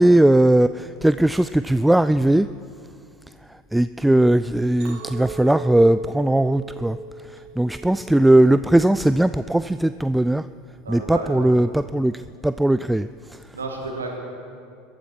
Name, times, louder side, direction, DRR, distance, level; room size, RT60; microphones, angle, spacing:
voice 1, 0.0-2.5 3.7-7.0 7.2-10.5 10.9-13.4, right 1 dB, 5° right, 13 dB, 0.3 m, -19 dB
Chink clink, 4.8-9.1 9.6-10.0, right 3 dB, 55° right, 3.1 m, -38 dB
voice 2, 10.8-11.6 13.5-14.2, right 3 dB, 85° right, 1 dB, 2.3 m, -31 dB
22.0 x 13.0 x 4.8 m, 2.3 s
figure-of-eight pair, 75°, 0 cm